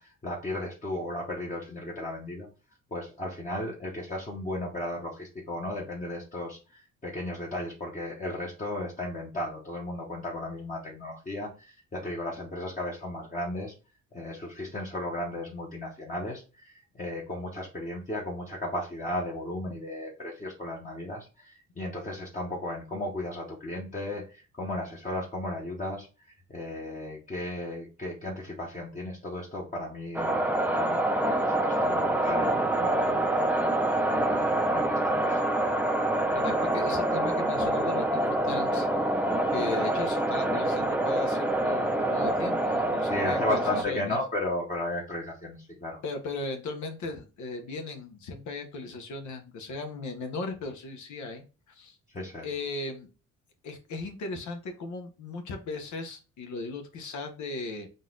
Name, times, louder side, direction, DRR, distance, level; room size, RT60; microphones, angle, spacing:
voice 1, 0.0-2.5 2.9-13.7 14.1-26.1 26.5-33.6 34.3-35.4 43.1-46.0 52.1-52.5, left 1 dB, 25° left, -4 dB, 1.1 m, -35 dB
sound 1, 30.1-43.8, right 1 dB, 5° right, 0.5 m, -26 dB
voice 2, 36.3-38.9 39.5-44.2 46.0-52.0 52.4-53.1 53.6-57.9, left 3 dB, 70° left, 4 dB, 1.0 m, -37 dB
4.0 x 2.5 x 3.8 m, 0.33 s
cardioid pair, 90°, 30 cm